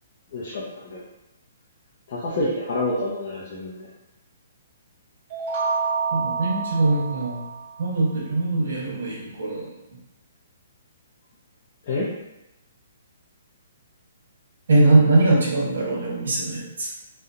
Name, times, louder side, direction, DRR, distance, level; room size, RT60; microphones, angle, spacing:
voice 1, 0.3-1.0 2.1-3.9 11.8-12.1, left 2 dB, 35° left, -7 dB, 0.5 m, -28 dB
sound 1, 5.3-8.1, right 5 dB, 30° right, 0.5 m, -28 dB
voice 2, 6.1-7.4 7.8-9.7 14.7-16.9, right 2 dB, 75° right, -4 dB, 0.9 m, -21 dB
2.7 x 2.0 x 2.4 m, 0.90 s
hypercardioid pair, 170°, 0 cm